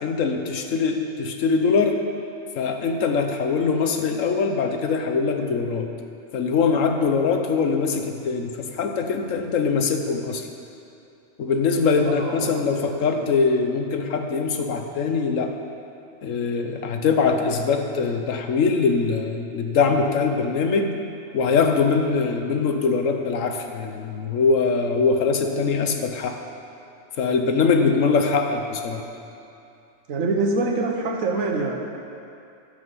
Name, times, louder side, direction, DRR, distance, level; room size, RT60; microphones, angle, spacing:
voice 1, 0.0-2.0 2.6-5.9 6.3-10.5 11.4-15.5 16.2-20.9 21.3-26.4 27.2-29.0, left 5 dB, 80° left, 5 dB, 1.2 m, -22 dB
voice 2, 12.0-12.7 13.2-13.3 30.1-31.8, right 3 dB, 85° right, 1 dB, 1.6 m, -25 dB
13.5 x 6.9 x 5.5 m, 2.6 s
omnidirectional pair, 1.3 m